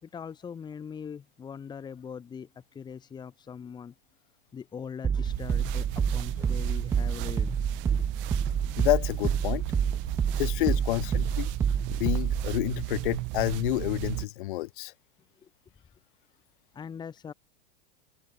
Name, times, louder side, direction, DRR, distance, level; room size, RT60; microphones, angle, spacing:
voice 1, 0.0-3.9 4.5-7.6 7.9-8.1 8.5-8.6 10.6-10.8 15.4-15.5 16.7-17.3, left 7 dB, 15° left, 2.8 m, -41 dB
sound 1, 5.0-12.5, right 7 dB, 10° right, 0.4 m, -28 dB
sound 2, 5.2-14.3, right 27 dB, 40° right, 4.0 m, -35 dB
voice 2, 8.8-9.6 10.4-11.5 12.0-14.9, left 18 dB, 60° left, 5.6 m, -29 dB
supercardioid pair, 160°, 29 cm